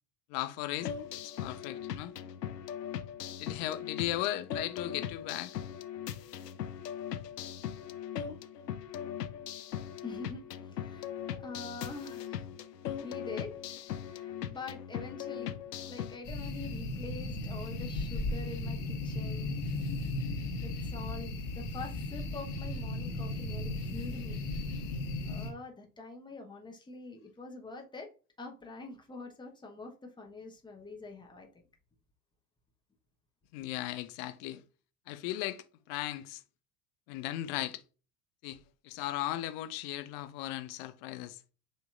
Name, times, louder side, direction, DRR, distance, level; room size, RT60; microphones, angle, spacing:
voice 1, 0.3-0.9 1.2-2.1 3.4-5.5 33.5-34.6 35.1-36.4 37.1-37.8 38.4-41.4, left 14 dB, 30° left, 0.4 m, -37 dB
sound 1, 0.8-16.2, left 9 dB, 75° left, 0.6 m, -40 dB
voice 2, 10.0-12.5 12.9-19.5 20.6-24.4 24.7-24.9 25.2-28.1 28.4-31.5, left 3 dB, 10° left, 1.1 m, -45 dB
sound 2, 16.2-25.5, left 2 dB, 45° left, 1.4 m, -36 dB
7.0 x 3.0 x 2.5 m
figure-of-eight pair, 75°, 49 cm